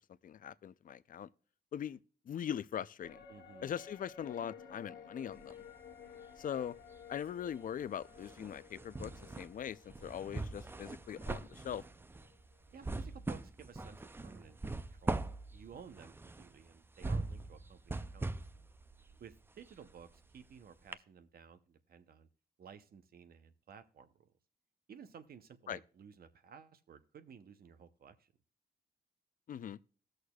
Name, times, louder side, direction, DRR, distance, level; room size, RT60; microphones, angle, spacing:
voice 1, 0.2-1.3 1.7-2.0 2.3-3.2 3.6-5.6 6.4-6.7 7.1-11.8 25.7-25.8 29.5-29.8, left 9 dB, 55° left, 0.4 m, -41 dB
sound 1, 3.0-12.5 12.9-13.0, left 7 dB, 75° left, 1.1 m, -55 dB
voice 2, 3.3-3.7 12.7-18.3 18.6-18.7 19.2-22.3 22.6-24.3 24.9-28.3, right 7 dB, 60° right, 0.7 m, -55 dB
sound 2, 5.3-6.5 6.8-20.5 20.9-21.0, right 2 dB, 15° right, 0.3 m, -42 dB
19.0 x 6.4 x 2.3 m
cardioid pair, 95°, 17 cm